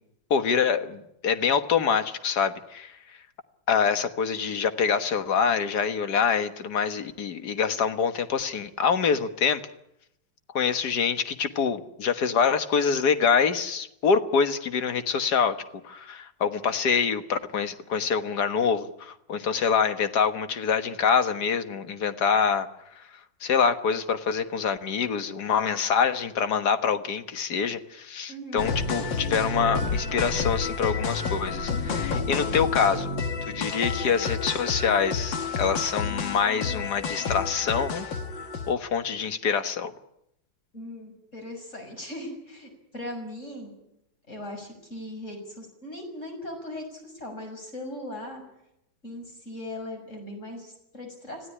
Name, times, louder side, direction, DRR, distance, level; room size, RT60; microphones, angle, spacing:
voice 1, 0.3-2.9 3.7-9.6 10.5-15.6 15.8-22.7 23.0-33.1 33.4-38.1 38.7-39.9, left 6 dB, 60° left, 10 dB, 1.9 m, -25 dB
voice 2, 28.3-28.7 40.7-43.7 44.3-48.4 49.0-51.5, left 1 dB, 40° left, 4 dB, 6.7 m, -39 dB
sound 1, 28.6-38.7, left 4 dB, 75° left, 2.5 m, -30 dB
26.0 x 16.5 x 9.9 m, 0.82 s
omnidirectional pair, 2.0 m